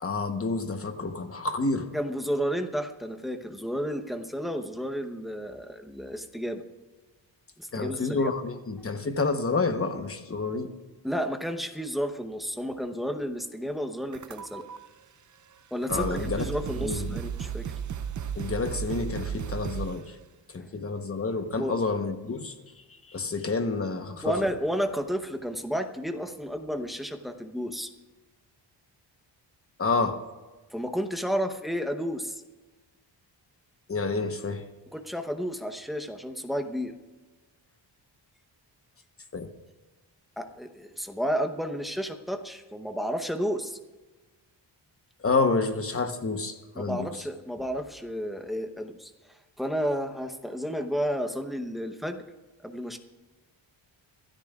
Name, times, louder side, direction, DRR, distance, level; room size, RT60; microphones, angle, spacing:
voice 1, 0.0-1.9 7.7-10.7 15.9-16.5 16.8-17.2 18.4-20.1 20.5-22.5 22.9-24.4 29.8-30.2 33.9-34.6 39.3-39.5 45.2-47.1, left 3 dB, 30° left, 7 dB, 1.0 m, -29 dB
voice 2, 1.9-6.6 7.6-8.3 11.0-14.7 15.7-17.7 21.6-21.8 24.2-27.9 30.7-32.4 34.9-37.0 40.4-43.8 46.7-52.2 52.6-53.0, equal, ahead, 6 dB, 0.8 m, -32 dB
sound 1, 14.1-14.8 15.5-15.6 15.9-20.1, right 8 dB, 40° right, 0.5 m, -34 dB
25.5 x 13.0 x 2.4 m, 1.2 s
wide cardioid pair, 175°, 46 cm